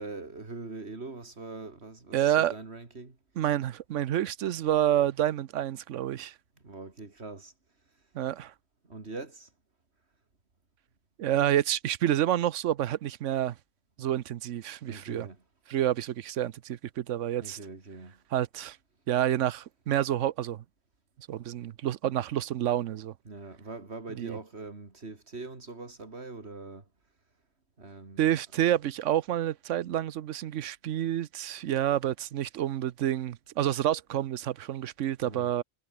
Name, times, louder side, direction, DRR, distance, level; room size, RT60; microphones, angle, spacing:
voice 1, 0.0-3.2 6.6-7.5 8.9-9.5 14.8-15.4 17.4-18.2 23.2-26.8 27.8-28.3 35.2-35.5, right 3 dB, 60° right, 3.3 m, -42 dB
voice 2, 2.1-2.5 3.4-6.3 8.1-8.5 11.2-13.5 14.0-15.3 15.7-17.6 18.3-18.8 19.1-20.6 21.3-23.1 24.2-24.4 28.2-35.6, right 11 dB, 80° right, 1.0 m, -28 dB
omnidirectional pair, 1.3 m